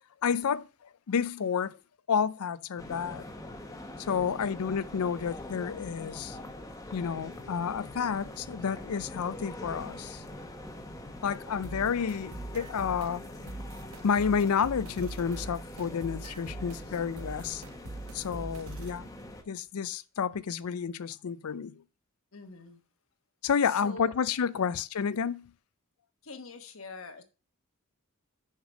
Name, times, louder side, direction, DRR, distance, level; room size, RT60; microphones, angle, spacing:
voice 1, 0.2-0.7 1.1-1.8 2.1-3.2 4.0-6.4 6.9-10.2 11.2-13.2 14.0-17.6 18.1-19.1 19.5-21.8 23.4-25.5, left 6 dB, 85° left, 0.5 m, -30 dB
sound 1, 2.8-19.4, left 1 dB, 15° left, 0.9 m, -44 dB
voice 2, 4.1-4.6 22.3-22.8 23.6-24.1 24.5-24.7 26.2-27.2, left 3 dB, 70° left, 1.2 m, -45 dB
sound 2, 11.6-19.0, right 2 dB, 80° right, 1.0 m, -43 dB
6.5 x 5.2 x 6.0 m
head